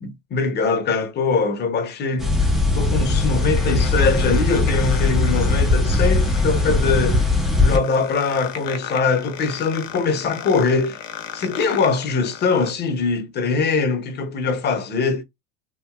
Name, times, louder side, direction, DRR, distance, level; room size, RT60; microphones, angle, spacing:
voice 1, 0.0-7.3 7.6-11.0 11.3-15.2, left 4 dB, 25° left, 0.6 m, -22 dB
sound 1, 2.2-12.7, left 9 dB, 85° left, 0.7 m, -36 dB
sound 2, 2.2-7.8, left 2 dB, ahead, 0.3 m, -19 dB
2.8 x 2.6 x 2.3 m
supercardioid pair, 105°, 37 cm